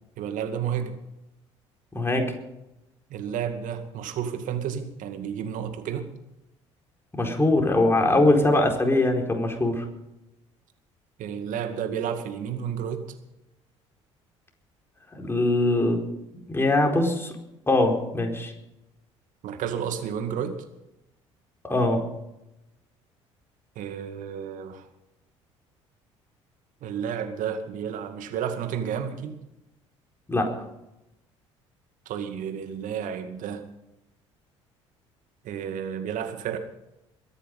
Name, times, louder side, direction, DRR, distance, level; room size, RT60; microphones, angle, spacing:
voice 1, 0.2-0.9 3.1-6.1 11.2-13.0 19.4-20.6 23.8-24.9 26.8-29.4 32.1-33.6 35.4-36.6, right 8 dB, 60° right, 7 dB, 2.2 m, -31 dB
voice 2, 1.9-2.3 7.1-9.8 15.1-16.0 16.5-17.3 17.7-18.5 21.6-22.0 30.3-30.6, left 2 dB, 15° left, 2 dB, 4.5 m, -22 dB
22.0 x 9.9 x 5.4 m, 0.89 s
hypercardioid pair, 55°, 15 cm